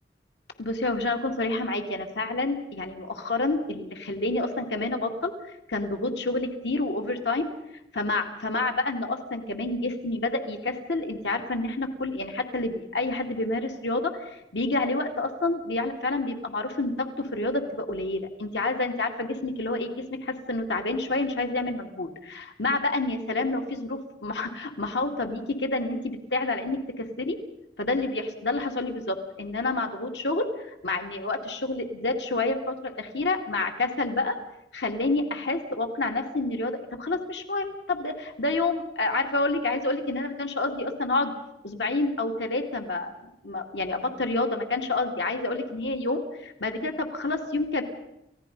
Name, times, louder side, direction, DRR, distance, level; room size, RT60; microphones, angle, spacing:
voice 1, 0.6-5.3 5.7-7.5 7.9-27.4 27.8-34.4 34.7-41.3 41.6-47.8, left 2 dB, 85° left, 4 dB, 2.4 m, -28 dB
29.5 x 16.5 x 5.4 m, 0.82 s
head